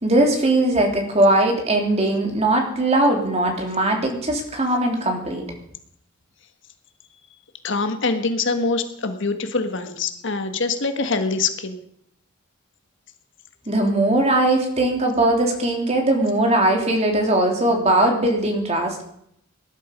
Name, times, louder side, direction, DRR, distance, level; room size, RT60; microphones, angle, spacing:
voice 1, 0.0-5.4 13.7-19.0, right 1 dB, 30° right, 2 dB, 3.1 m, -20 dB
voice 2, 7.6-11.8, left 3 dB, 60° left, 8 dB, 1.5 m, -24 dB
19.0 x 11.5 x 5.3 m, 0.70 s
head